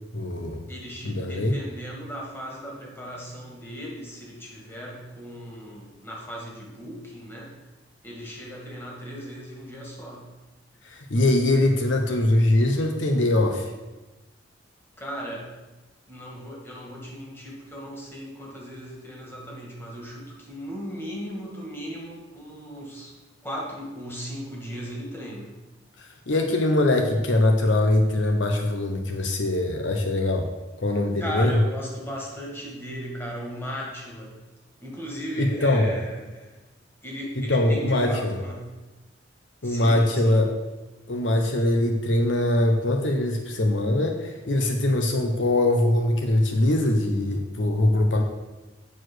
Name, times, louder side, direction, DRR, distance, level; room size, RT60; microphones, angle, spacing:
voice 1, 0.1-0.6 1.0-1.6 10.8-13.7 26.0-30.5 30.8-31.6 35.4-35.9 37.5-38.4 39.6-40.5 41.1-48.2, left 1 dB, 70° left, 3 dB, 0.9 m, -22 dB
voice 2, 0.7-7.5 8.0-10.3 15.0-15.5 16.1-23.1 23.4-25.5 31.2-34.3 34.8-36.5 37.0-38.7 39.6-40.4, equal, 10° left, -3 dB, 2.1 m, -37 dB
8.6 x 4.7 x 6.3 m, 1.1 s
head